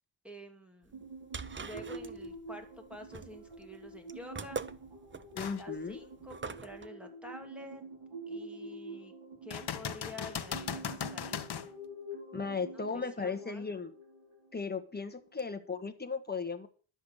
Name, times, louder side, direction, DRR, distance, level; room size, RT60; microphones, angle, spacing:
voice 1, 0.2-1.1 1.6-4.6 5.5-7.8 8.3-9.1 9.4-11.7 12.4-13.7, left 1 dB, ahead, 4 dB, 2.5 m, -49 dB
sound 1, 0.9-6.9, right 4 dB, 25° right, 0.6 m, -43 dB
sound 2, 0.9-15.3, right 1 dB, 70° right, 4.9 m, -47 dB
voice 2, 5.3-6.0 12.3-13.9 14.5-16.7, left 5 dB, 20° left, 7 dB, 1.5 m, -36 dB
sound 3, 5.4-5.6 6.2-6.3 9.5-11.7 15.4-15.5, left 8 dB, 50° left, 1.1 m, -38 dB
12.0 x 8.1 x 6.4 m, 0.40 s
wide cardioid pair, 135°, 49 cm